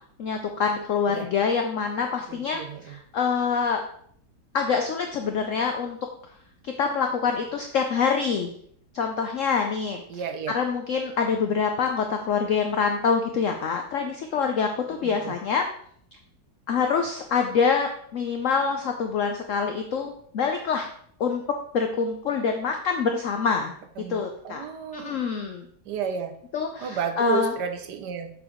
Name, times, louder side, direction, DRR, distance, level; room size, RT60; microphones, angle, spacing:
voice 1, 0.2-3.8 4.5-6.0 6.6-8.5 8.9-15.6 16.7-20.9 21.2-21.4 21.7-23.7 24.1-24.6 24.9-25.7 26.5-27.5, left 5 dB, 65° left, 4 dB, 0.8 m, -26 dB
voice 2, 2.3-3.0 10.1-10.6 15.0-15.3 24.0-25.2 25.9-26.3 26.8-28.3, right 7 dB, 70° right, 7 dB, 1.3 m, -32 dB
6.9 x 4.8 x 3.7 m, 0.64 s
omnidirectional pair, 1.9 m